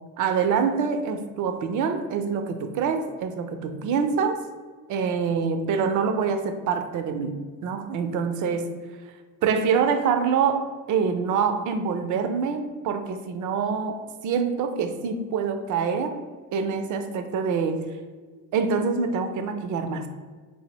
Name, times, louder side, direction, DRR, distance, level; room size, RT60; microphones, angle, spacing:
voice 1, 0.2-4.4 4.9-7.4 7.6-8.7 9.4-16.2 16.5-17.9 18.5-20.1, right 6 dB, 55° right, 7 dB, 0.5 m, -25 dB
3.7 x 2.0 x 2.9 m, 1.4 s
hypercardioid pair, 65°, 38 cm